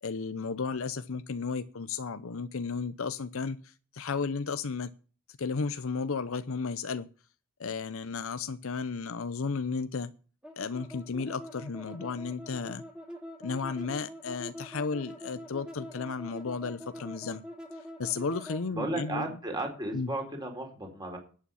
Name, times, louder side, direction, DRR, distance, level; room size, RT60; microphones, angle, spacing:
voice 1, 0.0-4.9 5.4-7.1 7.6-10.1 10.6-12.8 13.4-17.4 17.8-19.3 19.9-20.1, left 5 dB, 70° left, 12 dB, 0.7 m, -34 dB
sound 1, 10.4-18.7, equal, 5° right, 2.3 m, -44 dB
voice 2, 18.7-21.2, right 2 dB, 20° right, 3 dB, 4.2 m, -34 dB
11.0 x 8.9 x 7.0 m, 0.38 s
head